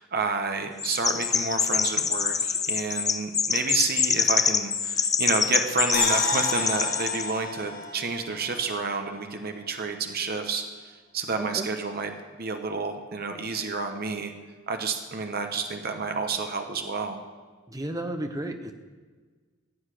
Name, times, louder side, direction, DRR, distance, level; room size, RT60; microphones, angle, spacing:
voice 1, 0.0-12.1 12.4-14.3 14.7-17.2, right 4 dB, 45° right, 5 dB, 1.0 m, -30 dB
Chirp tweet, 0.8-7.3, left 6 dB, 15° left, 0.4 m, -25 dB
sound 1, 5.9-9.1 9.5-9.6, left 3 dB, 45° left, 1.9 m, -32 dB
voice 2, 11.4-11.7 17.7-18.7, right 1 dB, 15° right, 6 dB, 0.9 m, -33 dB
15.0 x 8.1 x 6.6 m, 1.4 s
head